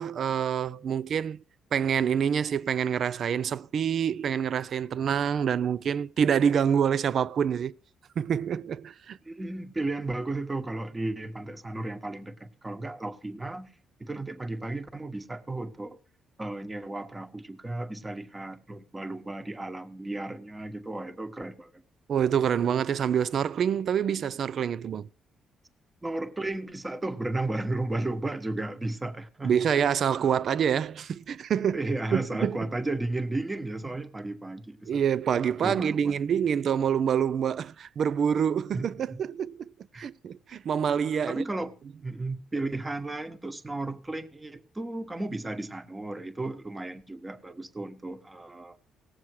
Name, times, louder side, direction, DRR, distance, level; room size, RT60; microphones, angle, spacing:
voice 1, 0.0-1.4 1.7-7.7 8.2-9.2 22.1-25.1 29.4-31.8 32.1-32.6 34.9-39.7 40.0-41.4, right 8 dB, 60° right, 0.4 m, -26 dB
voice 2, 9.2-13.7 14.0-16.0 16.4-21.8 26.0-29.5 31.7-35.0 35.6-36.2 38.7-39.2 39.9-40.1 41.3-48.8, right 2 dB, 20° right, 1.2 m, -34 dB
18.0 x 7.3 x 4.7 m
cardioid pair, 90°, 0 cm